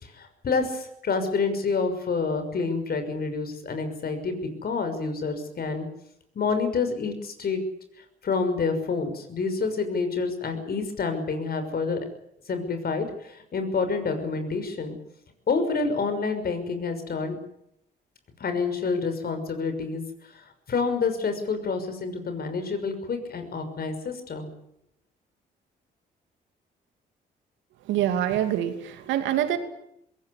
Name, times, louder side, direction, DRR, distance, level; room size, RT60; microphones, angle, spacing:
voice 1, 0.0-5.9 6.3-7.6 8.2-12.0 12.5-15.0 15.5-17.4 18.4-24.5, left 4 dB, 55° left, 8 dB, 6.2 m, -28 dB
voice 2, 27.8-29.6, right 11 dB, 85° right, 8 dB, 2.7 m, -25 dB
21.0 x 18.5 x 9.7 m, 0.76 s
supercardioid pair, 60°, 19 cm